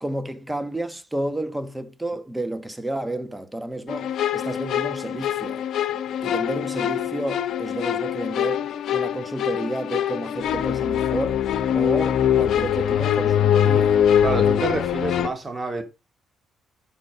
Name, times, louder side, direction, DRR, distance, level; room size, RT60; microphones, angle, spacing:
voice 1, 0.0-5.7 6.2-11.5 11.7-14.0, right 1 dB, 10° right, 1.3 m, -31 dB
sound 1, 3.9-15.3, left 9 dB, 70° left, 1.0 m, -23 dB
voice 2, 14.2-15.8, right 3 dB, 30° right, 3.0 m, -27 dB
10.0 x 6.2 x 5.1 m
cardioid pair, 90°, 0 cm